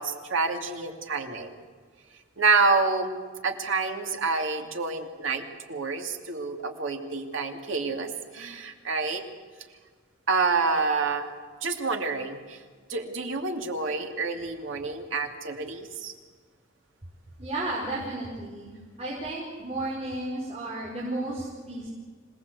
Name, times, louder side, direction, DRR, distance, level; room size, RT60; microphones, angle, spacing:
voice 1, 0.0-1.5 2.4-9.2 10.3-11.3 11.6-12.6 12.9-16.1, right 4 dB, 70° right, 4 dB, 2.5 m, -28 dB
voice 2, 17.4-18.7 19.0-21.9, right 2 dB, 35° right, -4 dB, 4.9 m, -33 dB
26.5 x 18.5 x 8.2 m, 1.5 s
head